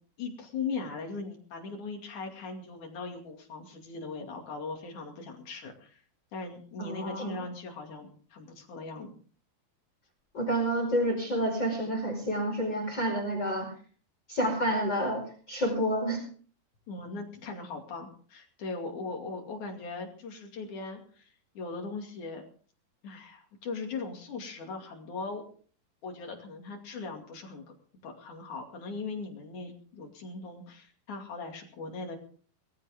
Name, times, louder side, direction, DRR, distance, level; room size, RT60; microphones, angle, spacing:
voice 1, 0.2-6.0 6.3-9.1 16.9-21.3 21.5-22.4 23.0-25.4 26.0-27.8 28.0-32.2, left 4 dB, 45° left, 2 dB, 3.3 m, -39 dB
voice 2, 6.8-7.3 10.3-13.7 14.3-15.2 15.5-16.2, equal, 25° left, 0 dB, 5.3 m, -29 dB
21.0 x 14.0 x 3.6 m, 0.44 s
omnidirectional pair, 5.6 m